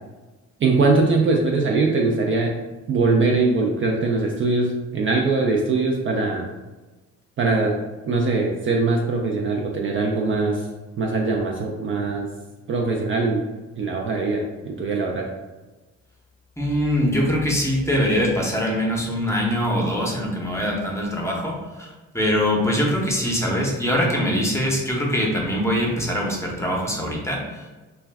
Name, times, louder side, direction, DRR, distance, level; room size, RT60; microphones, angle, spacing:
voice 1, 0.6-2.5 2.9-6.5 7.4-7.8 8.1-10.7 11.0-12.3 12.7-13.4 13.8-15.3, right 3 dB, 45° right, 0 dB, 0.4 m, -21 dB
voice 2, 16.6-27.7, equal, 10° left, -2 dB, 0.7 m, -23 dB
2.4 x 2.2 x 3.3 m, 1.2 s
cardioid pair, 90°, 30 cm